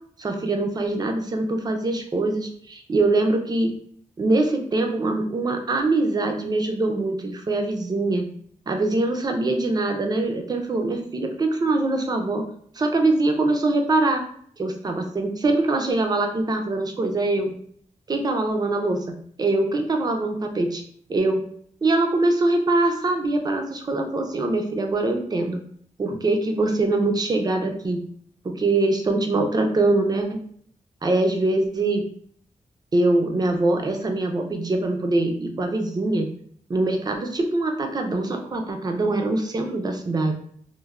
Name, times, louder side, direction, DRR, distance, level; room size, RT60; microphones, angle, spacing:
voice 1, 0.2-3.7 4.2-8.3 8.7-12.4 12.7-14.2 14.6-17.5 18.1-20.8 21.1-21.4 21.8-25.6 26.0-28.0 28.4-30.4 31.0-32.0 32.9-36.3 36.7-40.3, right 2 dB, 30° right, 4 dB, 0.4 m, -23 dB
3.1 x 2.1 x 2.3 m, 0.62 s
wide cardioid pair, 170°, 13 cm